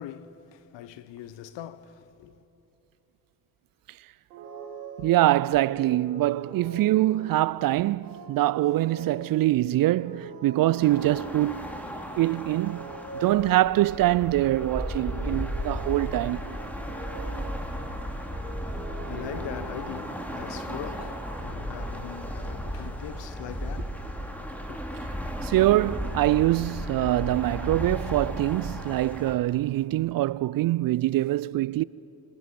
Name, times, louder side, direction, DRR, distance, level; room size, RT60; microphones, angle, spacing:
voice 1, 0.0-2.4 18.7-24.8, left 11 dB, 65° left, 1.1 m, -42 dB
sound 1, 4.3-21.5, right 3 dB, 85° right, 3.7 m, -43 dB
voice 2, 5.0-11.7 12.2-12.9 13.2-16.6 25.4-31.8, right 16 dB, 50° right, 0.4 m, -24 dB
sound 2, 10.8-29.4, equal, 5° left, 3.0 m, -35 dB
26.5 x 26.0 x 5.4 m
hypercardioid pair, 45°, 47 cm